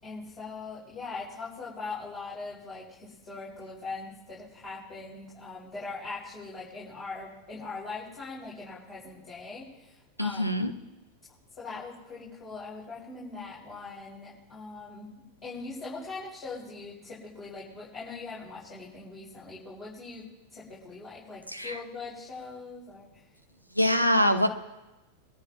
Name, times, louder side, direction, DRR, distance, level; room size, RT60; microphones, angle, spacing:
voice 1, 0.0-10.4 11.6-23.1, left 3 dB, 25° left, -8 dB, 7.0 m, -41 dB
voice 2, 10.2-10.7 21.5-21.8 23.8-24.5, left 1 dB, 90° left, 7 dB, 1.5 m, -24 dB
24.0 x 13.5 x 3.1 m, 1.0 s
figure-of-eight pair, 90°, 0 cm